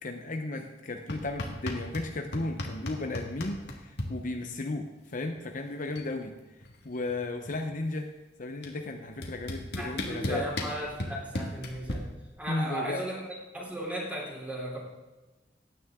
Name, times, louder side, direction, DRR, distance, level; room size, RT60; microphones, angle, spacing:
voice 1, 0.0-6.4 6.8-8.1 8.4-10.5 12.5-13.1, left 2 dB, 50° left, 5 dB, 0.8 m, -34 dB
sound 1, 1.1-2.1 2.3-4.1 5.4-5.5 5.7-6.1 6.4-7.8 8.6-8.7 9.2-11.9, left 1 dB, 70° left, 1.8 m, -35 dB
voice 2, 9.7-12.0 12.4-14.8, right 1 dB, 10° right, -4 dB, 3.3 m, -36 dB
16.0 x 9.6 x 3.7 m, 1.1 s
head